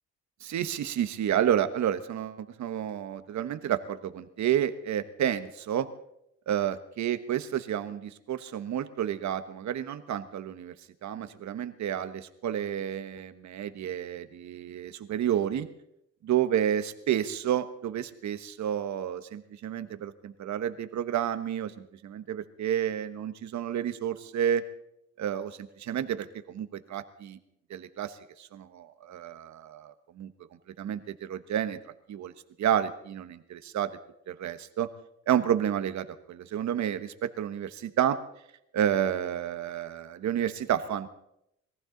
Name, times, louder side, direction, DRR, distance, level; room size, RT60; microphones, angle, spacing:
voice 1, 0.4-5.9 6.5-10.7 11.0-15.7 16.2-24.6 25.2-25.5 25.8-27.4 27.7-30.3 30.8-31.8 32.1-32.3 32.6-33.9 34.3-34.9 35.3-38.2 38.7-41.1, right 10 dB, 65° right, 11 dB, 1.2 m, -30 dB
21.5 x 14.5 x 3.9 m, 0.78 s
cardioid pair, 90°, 30 cm